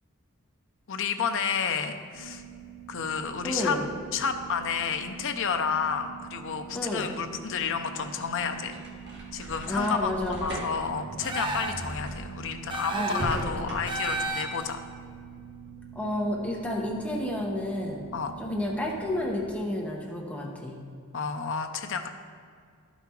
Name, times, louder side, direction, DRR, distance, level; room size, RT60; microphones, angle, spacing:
voice 1, 0.9-2.4 2.9-3.8 4.1-8.8 9.3-10.1 10.4-14.8 18.1-18.3 21.1-22.1, left 6 dB, 60° left, 7 dB, 0.7 m, -30 dB
sound 1, 2.1-19.5, right 8 dB, 75° right, 1.4 m, -45 dB
voice 2, 3.4-3.8 6.7-7.1 9.7-10.4 12.9-13.7 15.9-18.1 18.4-20.8, left 1 dB, 5° left, -2 dB, 1.0 m, -31 dB
sound 2, 7.8-14.3, right 1 dB, 55° right, 1.6 m, -39 dB
sound 3, 11.2-11.9 12.7-13.4 13.9-14.7, right 2 dB, 20° right, 0.9 m, -32 dB
12.0 x 5.5 x 4.5 m, 2.2 s
head